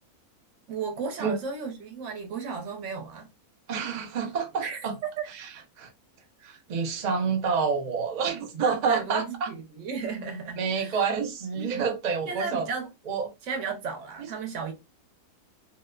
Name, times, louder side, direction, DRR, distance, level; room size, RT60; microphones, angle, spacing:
voice 1, 0.7-3.3 4.6-5.3 8.6-11.1 11.6-11.9 12.2-12.9 13.4-14.7, right 5 dB, 60° right, 0.9 m, -34 dB
voice 2, 3.7-4.9 5.8-5.9 6.4-9.5 10.6-12.7 13.1-13.3, right 5 dB, 80° right, 0.4 m, -28 dB
2.8 x 2.0 x 2.2 m
omnidirectional pair, 1.6 m